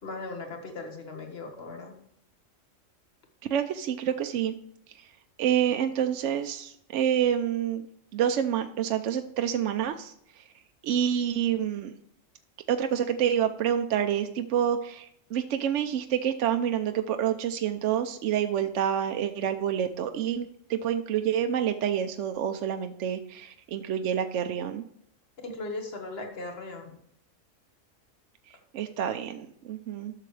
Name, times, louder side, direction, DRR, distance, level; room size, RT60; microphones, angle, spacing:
voice 1, 0.0-2.0 25.4-27.0, left 2 dB, 50° left, 4 dB, 1.8 m, -38 dB
voice 2, 3.5-4.5 5.0-5.1 5.4-7.9 8.1-10.4 10.8-11.9 12.7-24.8 28.7-30.1, right 9 dB, 70° right, 7 dB, 0.9 m, -28 dB
12.0 x 6.8 x 3.2 m, 0.70 s
omnidirectional pair, 1.3 m